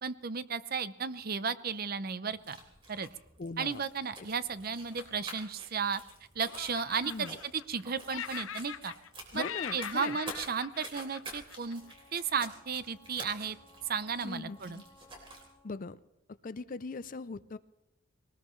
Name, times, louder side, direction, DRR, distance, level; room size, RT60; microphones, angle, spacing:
voice 1, 0.0-2.6 2.9-3.1 3.6-6.0 6.4-8.9 9.3-9.4 9.7-11.8 12.1-13.6 13.9-14.8, right 6 dB, 45° right, 14 dB, 0.6 m, -34 dB
sound 1, 2.3-15.5, right 2 dB, 25° right, 3.5 m, -50 dB
voice 2, 3.4-3.8 7.0-7.3 9.3-10.2 14.2-14.8 15.6-16.0 16.4-17.6, left 3 dB, 40° left, 16 dB, 0.4 m, -40 dB
Laughter, 4.9-6.1 6.5-7.8 8.1-9.1 9.3-11.9, left 9 dB, 70° left, 0.7 m, -42 dB
Wind instrument woodwind instrument, 11.6-15.9, left 2 dB, 20° left, 1.9 m, -61 dB
21.0 x 19.0 x 3.2 m, 0.92 s
head